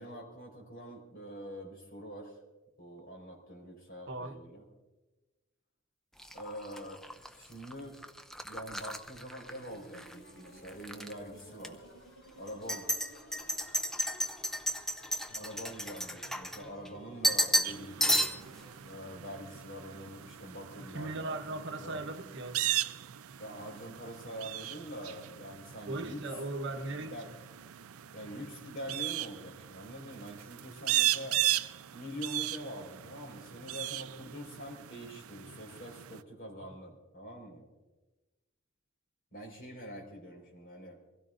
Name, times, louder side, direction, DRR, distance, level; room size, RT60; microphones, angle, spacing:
voice 1, 0.0-2.4 2.8-4.6 6.3-8.0 8.4-11.8 12.3-12.9 15.3-18.2 18.8-22.0 23.4-26.3 27.0-27.3 28.1-31.4 31.9-37.7 39.3-41.0, equal, 45° left, 4.7 m, -45 dB
sound 1, 6.2-10.1 10.5-11.1 11.6-11.7 12.5-16.9 17.2-17.7 18.0-18.6, equal, ahead, 0.5 m, -33 dB
sound 2, 9.5-18.8, right 1 dB, 65° left, 6.5 m, -55 dB
sound 3, 17.6-36.2, right 14 dB, 90° right, 0.5 m, -37 dB
voice 2, 20.8-22.6 25.9-27.3, right 2 dB, 60° right, 1.1 m, -38 dB
24.0 x 16.5 x 2.6 m
head